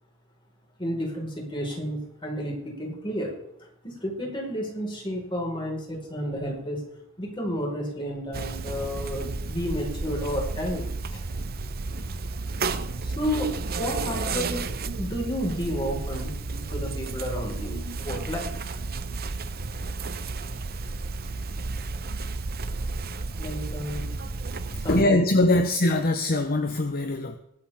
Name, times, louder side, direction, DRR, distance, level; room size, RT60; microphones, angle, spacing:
voice 1, 0.8-3.4 3.8-6.8 7.2-11.2 12.6-13.5 13.8-14.6 15.0-18.8 23.4-24.1 24.8-25.2, equal, 25° left, -2 dB, 5.1 m, -31 dB
sound 1, 8.3-25.0, right 3 dB, 45° right, 0.8 m, -32 dB
voice 2, 24.7-27.4, left 1 dB, 45° left, 6 dB, 1.0 m, -22 dB
22.0 x 8.9 x 3.7 m, 0.79 s
head